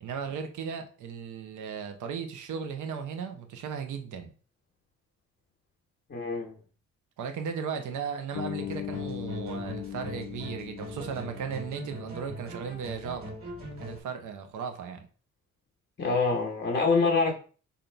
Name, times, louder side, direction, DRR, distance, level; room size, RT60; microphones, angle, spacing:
voice 1, 0.0-4.3 7.2-13.3 13.8-15.1, right 6 dB, 75° right, 6 dB, 0.9 m, -36 dB
voice 2, 6.1-6.6 16.0-17.3, left 4 dB, 35° left, 0 dB, 1.1 m, -25 dB
Bass guitar, 8.4-12.5, left 12 dB, 60° left, 0.5 m, -39 dB
sound 1, 8.6-14.0, equal, 50° right, 1.7 m, -41 dB
3.9 x 2.7 x 4.4 m, 0.38 s
cardioid pair, 90°, 30 cm